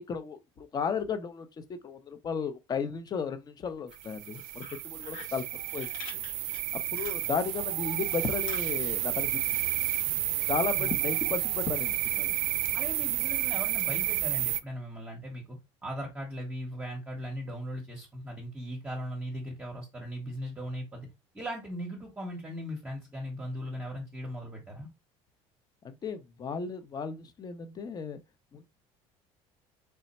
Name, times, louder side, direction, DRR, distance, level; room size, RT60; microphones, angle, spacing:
voice 1, 0.0-1.5 1.8-5.4 5.7-6.2 6.9-9.7 10.5-12.3 25.8-28.2 28.5-28.6, left 6 dB, 30° left, 0.5 m, -34 dB
Fire, 3.7-7.7 8.0-10.8, left 5 dB, 85° left, 1.6 m, -49 dB
sound 1, 4.0-14.6, right 15 dB, 80° right, 0.4 m, -31 dB
voice 2, 12.7-21.1 21.3-24.9, equal, 10° right, 0.8 m, -38 dB
3.2 x 2.0 x 4.0 m
cardioid pair, 110°, 13 cm